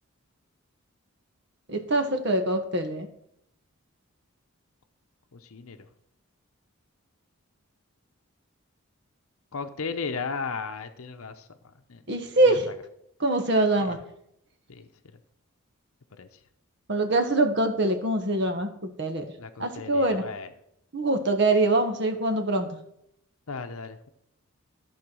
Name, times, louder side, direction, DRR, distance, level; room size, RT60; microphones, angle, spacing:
voice 1, 1.7-3.1 12.1-12.7 13.2-14.0 16.9-19.2 19.6-20.2 20.9-22.7, right 2 dB, 50° right, 6 dB, 1.3 m, -24 dB
voice 2, 5.3-5.8 9.5-11.5 11.9-12.0 12.4-12.7 13.8-14.0 14.7-14.9 16.2-16.3 19.4-20.5 23.5-24.1, left 4 dB, 75° left, 7 dB, 0.8 m, -35 dB
14.0 x 4.7 x 6.2 m, 0.74 s
head